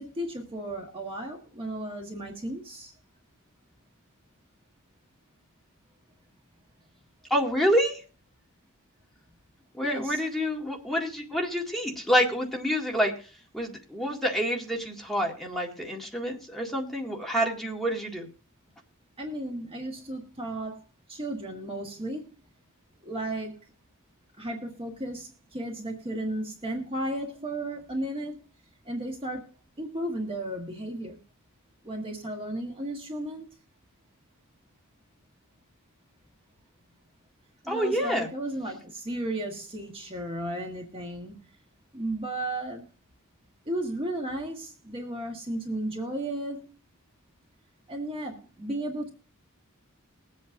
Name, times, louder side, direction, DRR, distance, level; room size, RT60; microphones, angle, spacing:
voice 1, 0.0-2.9 9.8-10.2 19.2-20.8 21.1-22.3 23.0-23.5 24.4-28.4 28.8-29.5 29.8-31.2 31.8-33.5 37.6-41.3 41.9-42.9 43.6-46.8 47.9-49.1, right 1 dB, 25° right, 1 dB, 1.4 m, -34 dB
voice 2, 7.3-8.0 9.7-13.1 13.5-18.3 37.7-38.3, equal, ahead, -1 dB, 2.0 m, -27 dB
21.5 x 8.3 x 2.6 m, 0.36 s
head